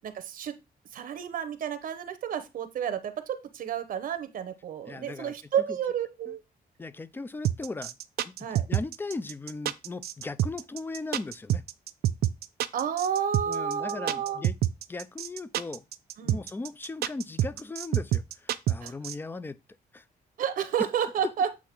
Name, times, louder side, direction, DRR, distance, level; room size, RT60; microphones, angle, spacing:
voice 1, 0.0-0.6 0.9-6.4 8.4-8.6 12.7-14.4 16.2-16.4 18.8-18.9 20.4-21.5, right 8 dB, 60° right, 0.9 m, -31 dB
voice 2, 4.9-5.4 6.3-6.4 6.8-8.0 8.2-11.6 13.4-14.6 14.9-15.8 16.2-19.6 19.9-20.1, left 3 dB, 15° left, 0.4 m, -38 dB
sound 1, 7.4-19.1, right 12 dB, 80° right, 0.5 m, -27 dB
8.3 x 2.8 x 5.9 m
cardioid pair, 160°, 16 cm